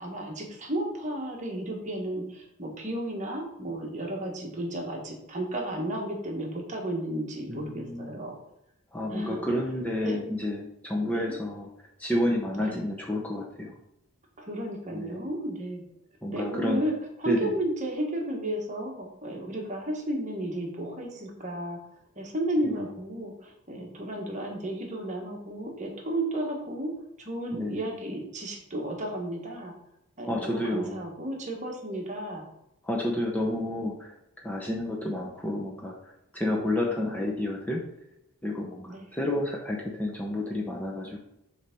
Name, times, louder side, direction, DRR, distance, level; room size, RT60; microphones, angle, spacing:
voice 1, 0.0-8.4 9.1-9.4 10.0-10.2 11.0-11.4 12.6-12.8 14.4-15.8 16.3-16.9 17.2-21.8 22.2-26.9 27.2-29.7 30.2-32.4 38.9-39.2, right 1 dB, 35° right, 0 dB, 1.4 m, -33 dB
voice 2, 7.5-8.2 8.9-11.7 12.0-13.7 14.9-15.3 16.2-16.8 17.3-17.5 22.6-22.9 27.5-27.8 30.2-31.0 32.8-34.1 34.4-37.9 38.4-41.2, left 1 dB, 5° left, -2 dB, 0.7 m, -30 dB
7.0 x 3.4 x 5.2 m, 0.83 s
head